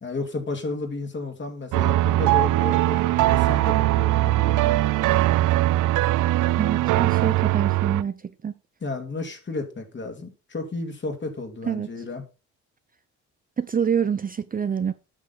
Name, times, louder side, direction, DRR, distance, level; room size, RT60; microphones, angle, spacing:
voice 1, 0.0-4.8 8.8-12.2, left 3 dB, 35° left, 2.5 m, -32 dB
sound 1, 1.7-8.0, right 16 dB, 75° right, 0.5 m, -21 dB
voice 2, 6.6-8.5 11.7-11.9 13.6-14.9, right 7 dB, 30° right, 0.6 m, -26 dB
8.9 x 6.3 x 4.0 m
cardioid pair, 80°, 31 cm